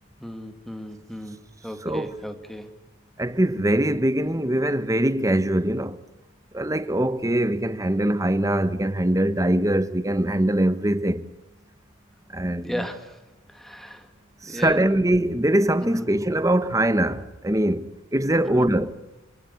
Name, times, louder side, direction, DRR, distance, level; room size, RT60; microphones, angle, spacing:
voice 1, 0.2-2.7 12.6-13.2 13.5-14.1 14.5-14.9 15.8-16.1 18.4-18.7, equal, ahead, 1.9 m, -35 dB
voice 2, 1.8-2.2 3.2-6.0 6.5-11.2 12.3-12.8 14.4-18.9, right 1 dB, 15° right, 1.0 m, -22 dB
27.0 x 19.0 x 8.3 m
head